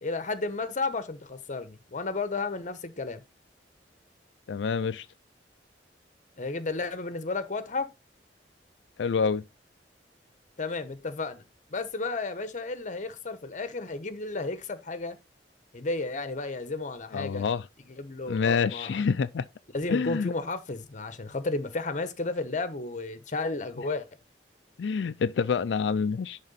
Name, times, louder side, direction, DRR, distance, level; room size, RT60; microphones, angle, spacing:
voice 1, 0.0-3.2 6.4-7.9 10.6-11.4 11.7-15.2 15.7-17.4 17.9-18.9 19.7-24.1, left 3 dB, 45° left, 1.0 m, -33 dB
voice 2, 4.5-5.1 9.0-9.4 17.1-17.7 18.3-19.4 19.9-20.3 24.8-26.4, left 5 dB, 85° left, 0.4 m, -27 dB
10.5 x 3.7 x 4.0 m
head